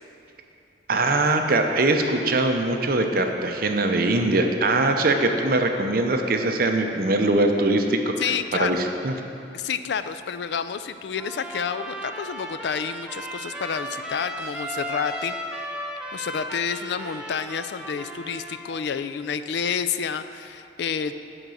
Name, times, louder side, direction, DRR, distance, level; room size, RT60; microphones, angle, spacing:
voice 1, 0.9-8.0 8.6-9.1, right 2 dB, 50° right, 4 dB, 0.7 m, -22 dB
voice 2, 8.2-8.8 9.5-15.3 16.1-21.2, left 6 dB, 65° left, 11 dB, 0.3 m, -29 dB
Trumpet, 11.2-18.8, equal, 5° right, 0.6 m, -35 dB
10.5 x 4.0 x 7.6 m, 2.6 s
head